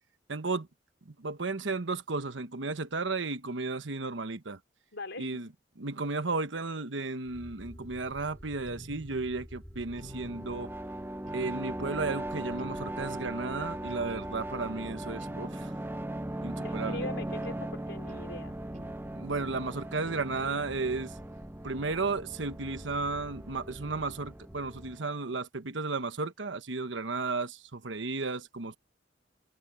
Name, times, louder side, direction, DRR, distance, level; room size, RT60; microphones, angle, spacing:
voice 1, 0.3-0.7 1.0-4.6 5.2-5.5 5.8-10.7 11.3-15.7 16.4-17.1 19.1-21.2 21.6-28.8, right 3 dB, 75° right, 1.2 m, -34 dB
voice 2, 4.9-5.4 16.6-18.6, left 2 dB, 70° left, 3.5 m, -41 dB
sound 1, 7.2-25.0, equal, 10° left, 5.7 m, -49 dB
sound 2, 8.7-9.4 10.0-10.7 11.3-12.0 12.6-13.3 13.9-14.6 15.2-15.9 17.4-17.6 18.1-18.3 18.7-19.0 19.4-19.6 20.1-20.3, equal, 45° right, 2.9 m, -50 dB
sound 3, 9.9-25.4, right 1 dB, 10° right, 0.6 m, -39 dB
head